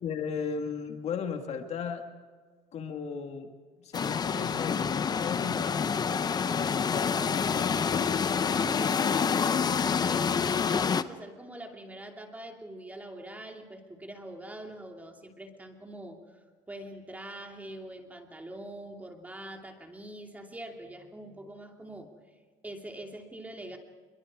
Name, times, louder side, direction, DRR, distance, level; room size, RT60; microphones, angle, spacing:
voice 1, 0.0-2.0 2.7-3.5 3.8-5.9 6.5-8.2, left 6 dB, 50° left, 5 dB, 2.0 m, -36 dB
sound 1, 3.9-11.0, left 6 dB, 30° left, 0.8 m, -27 dB
voice 2, 8.5-16.4 16.7-22.1 22.6-23.8, right 1 dB, 10° right, 2 dB, 2.8 m, -44 dB
26.5 x 23.5 x 4.9 m, 1.5 s
cardioid pair, 120°, 14 cm